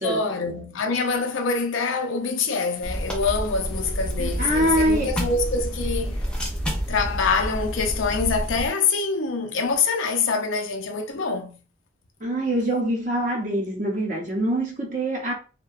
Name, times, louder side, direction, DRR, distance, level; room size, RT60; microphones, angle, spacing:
voice 1, 0.0-6.2 6.9-11.6, left 4 dB, 80° left, 0.5 m, -25 dB
sound 1, 2.8-8.7, equal, 5° left, 0.3 m, -29 dB
voice 2, 4.2-5.1 12.2-15.3, right 1 dB, 40° right, 0.7 m, -24 dB
2.6 x 2.1 x 2.4 m
head